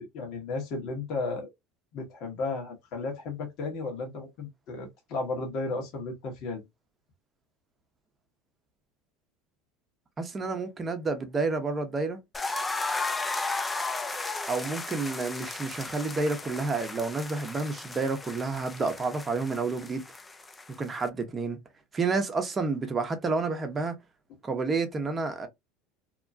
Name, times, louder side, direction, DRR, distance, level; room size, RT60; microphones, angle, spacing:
voice 1, 0.0-1.5 1.9-6.6, left 3 dB, 60° left, 1.2 m, -34 dB
voice 2, 10.2-12.2 14.4-20.0 20.8-21.6 21.9-23.9 24.4-25.5, right 3 dB, 25° right, 0.8 m, -30 dB
sound 1, 12.3-21.1, left 3 dB, 15° left, 0.5 m, -35 dB
2.9 x 2.2 x 2.6 m
hypercardioid pair, 85°, 0 cm